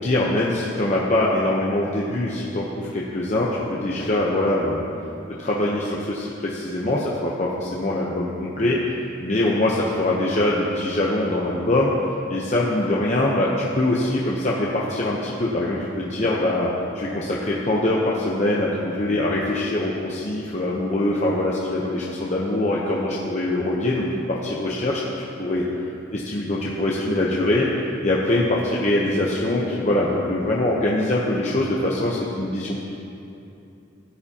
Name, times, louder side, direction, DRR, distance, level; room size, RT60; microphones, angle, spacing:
voice 1, 0.0-4.8 5.4-8.8 9.2-11.9 12.3-25.0 25.4-25.6 26.1-27.7 28.0-32.9, left 1 dB, 35° left, -5 dB, 0.8 m, -23 dB
15.0 x 9.6 x 2.9 m, 2.7 s
head